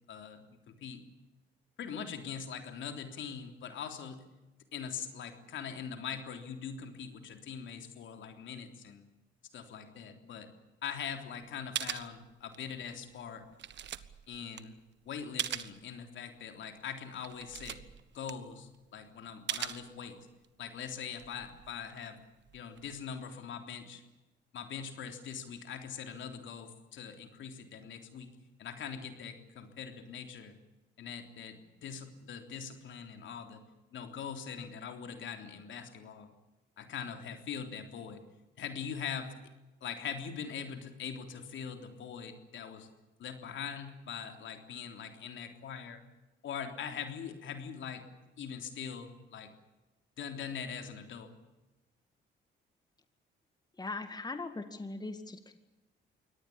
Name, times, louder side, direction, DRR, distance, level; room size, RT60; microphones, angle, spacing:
voice 1, 0.1-1.0 1.8-4.2 4.7-9.0 9.5-10.5 10.8-13.4 14.3-14.8 15.1-17.8 18.1-20.2 20.6-22.2 22.5-24.0 24.5-28.3 28.6-30.5 31.0-33.6 33.9-36.3 36.8-38.2 38.6-39.3 39.8-42.9 43.2-46.0 46.4-48.0 48.4-49.5 50.2-51.3, left 7 dB, 70° left, 6 dB, 3.6 m, -42 dB
sound 1, 11.4-11.5 11.7-12.8 13.1-15.8 16.3-16.4 16.8-16.9 17.1-18.9 19.5-20.4 20.9-23.1, right 10 dB, 65° right, 1.4 m, -41 dB
voice 2, 53.8-55.6, left 3 dB, 20° left, 9 dB, 2.1 m, -40 dB
24.0 x 18.5 x 8.7 m, 1.0 s
cardioid pair, 90°, 20 cm